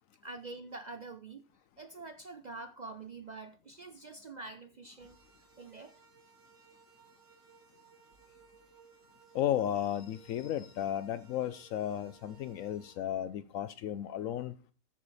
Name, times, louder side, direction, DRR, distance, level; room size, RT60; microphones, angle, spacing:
voice 1, 0.2-1.4 1.8-5.2 5.6-5.9, right 3 dB, 45° right, 0.6 m, -46 dB
sound 1, 5.0-13.0, right 6 dB, 65° right, 1.9 m, -61 dB
voice 2, 9.3-14.5, left 10 dB, 75° left, 1.0 m, -34 dB
13.5 x 5.0 x 4.1 m
omnidirectional pair, 1.4 m